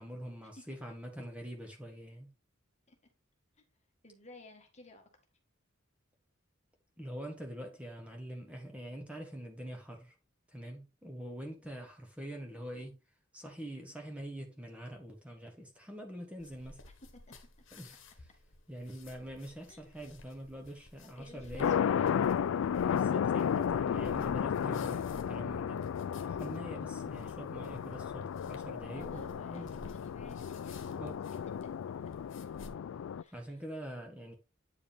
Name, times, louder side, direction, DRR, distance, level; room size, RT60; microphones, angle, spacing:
voice 1, 0.0-2.3 7.0-10.1 10.5-13.0 13.3-16.8 17.7-18.0 18.7-22.0 22.9-25.8 26.2-29.7 30.9-31.2 33.3-34.4, equal, 5° right, 1.2 m, -44 dB
voice 2, 4.0-5.1 17.1-17.3 19.7-20.1 21.0-22.2 22.6-22.8 28.9-31.2 33.2-33.6, left 2 dB, 35° left, 1.5 m, -55 dB
sound 1, 16.4-32.7, left 2 dB, 65° left, 1.3 m, -54 dB
sound 2, 21.6-33.2, left 8 dB, 85° left, 0.3 m, -33 dB
8.8 x 4.9 x 3.4 m
head